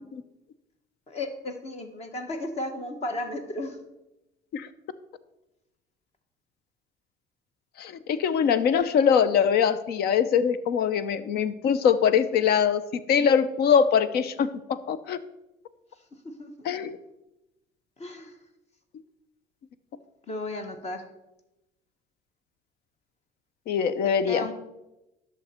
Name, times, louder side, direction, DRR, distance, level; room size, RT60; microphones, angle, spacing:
voice 1, 1.1-3.8 16.4-16.7 18.0-18.4 20.3-21.0 24.3-24.5, left 2 dB, 40° left, 6 dB, 1.2 m, -34 dB
voice 2, 7.8-15.2 16.6-17.0 23.7-24.5, left 7 dB, 70° left, 14 dB, 0.7 m, -23 dB
11.5 x 6.5 x 4.3 m, 0.94 s
cardioid pair, 110°, 17 cm